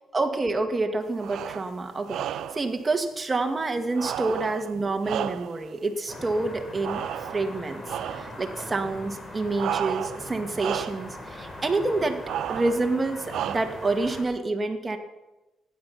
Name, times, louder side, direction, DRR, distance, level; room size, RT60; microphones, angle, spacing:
voice 1, 0.1-7.8 8.1-12.2 12.5-15.0, right 3 dB, 25° right, 4 dB, 1.8 m, -28 dB
sound 1, 1.2-1.7 2.1-2.7 3.9-5.7 6.8-7.6 7.9-8.4 9.5-10.3 10.5-11.1 12.2-12.9 13.3-13.9, right 10 dB, 75° right, 0.5 m, -32 dB
sound 2, 6.1-14.2, left 1 dB, 25° left, 3.3 m, -41 dB
15.0 x 10.0 x 5.8 m, 1.0 s
cardioid pair, 90°, 0 cm